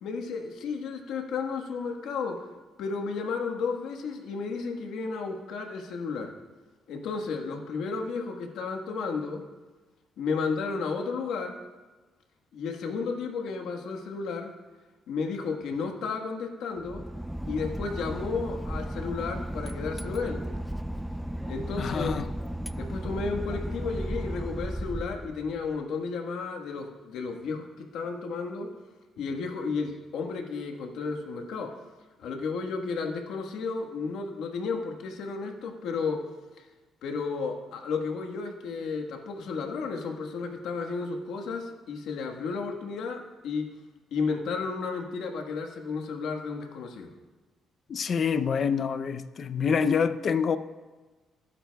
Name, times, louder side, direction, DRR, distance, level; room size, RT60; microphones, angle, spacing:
voice 1, 0.0-2.4 2.8-6.3 6.9-9.4 10.2-11.6 12.5-14.5 15.1-17.1 17.5-20.4 21.5-22.2 22.8-28.7 29.2-31.7 32.2-36.2 37.0-43.7 44.1-47.1, left 4 dB, 80° left, 1.4 m, -33 dB
Boat Water vehicle / Engine, 16.8-25.8, right 1 dB, ahead, 0.3 m, -35 dB
voice 2, 21.8-22.3 47.9-50.6, left 6 dB, 50° left, 0.6 m, -26 dB
19.0 x 9.8 x 2.3 m
cardioid pair, 90°, 0 cm